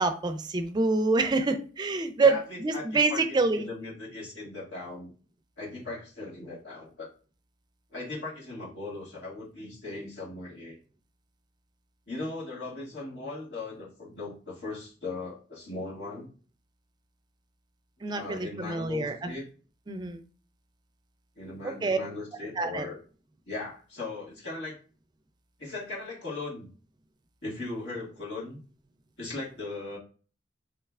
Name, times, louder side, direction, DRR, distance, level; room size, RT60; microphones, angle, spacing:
voice 1, 0.0-3.7 18.0-19.3 19.9-20.2 21.6-22.0 22.6-22.9, right 3 dB, 25° right, 8 dB, 0.4 m, -26 dB
voice 2, 2.2-5.1 5.6-7.1 7.9-10.8 12.1-16.3 18.1-19.5 21.4-23.0 23.5-24.8 25.6-26.7 27.4-28.6 29.2-30.0, left 3 dB, 75° left, -5 dB, 1.9 m, -38 dB
3.7 x 3.2 x 2.4 m, 0.37 s
head